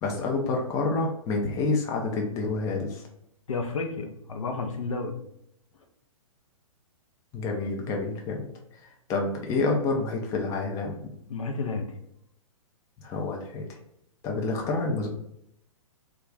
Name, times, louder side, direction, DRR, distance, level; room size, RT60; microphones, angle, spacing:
voice 1, 0.0-3.0 7.3-8.5 8.8-11.0 13.0-13.6 14.2-15.1, left 3 dB, 20° left, 0 dB, 0.4 m, -28 dB
voice 2, 3.5-5.2 11.3-11.9, left 4 dB, 70° left, 4 dB, 0.5 m, -31 dB
2.3 x 2.2 x 3.6 m, 0.76 s
figure-of-eight pair, 115°, 18 cm